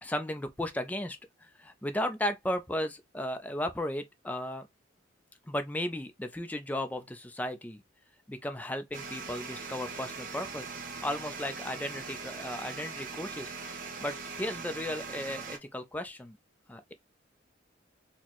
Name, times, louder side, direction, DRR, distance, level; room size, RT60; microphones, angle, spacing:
voice 1, 0.0-4.7 5.5-7.8 8.3-10.7 11.0-16.4 16.7-16.9, left 1 dB, 10° left, 0.4 m, -35 dB
sound 1, 8.9-15.6, right 4 dB, 45° right, 0.7 m, -41 dB
4.1 x 2.1 x 2.9 m
head